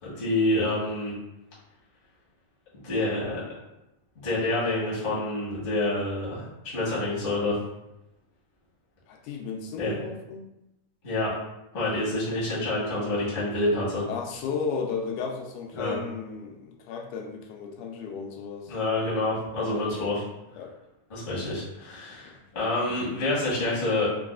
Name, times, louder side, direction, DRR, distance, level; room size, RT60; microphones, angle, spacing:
voice 1, 0.0-1.1 2.8-3.4 4.2-6.5 6.7-7.6 9.8-9.9 11.0-11.3 11.7-14.0 15.7-16.0 18.7-20.2 21.1-24.1, left 2 dB, 45° left, -8 dB, 0.7 m, -27 dB
voice 2, 9.1-10.5 14.1-18.8 19.7-20.1 20.6-20.7 22.3-22.4, left 5 dB, 90° left, 2 dB, 2.0 m, -34 dB
5.3 x 2.3 x 2.4 m, 0.90 s
omnidirectional pair, 3.4 m